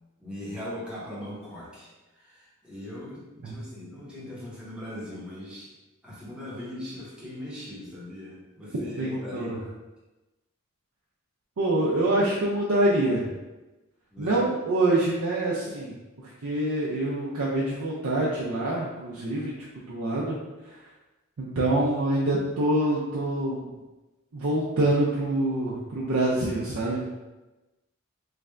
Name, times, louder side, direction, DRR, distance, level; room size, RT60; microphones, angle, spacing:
voice 1, 0.2-5.7 6.0-9.5 14.1-14.4, left 1 dB, 5° right, -9 dB, 1.0 m, -40 dB
voice 2, 9.0-9.6 11.6-13.3 14.2-15.9 16.4-19.5 19.9-20.4 20.7-20.8 21.4-23.7 24.3-27.0, right 1 dB, 90° right, -5 dB, 0.6 m, -25 dB
3.3 x 2.5 x 3.3 m, 1.1 s
head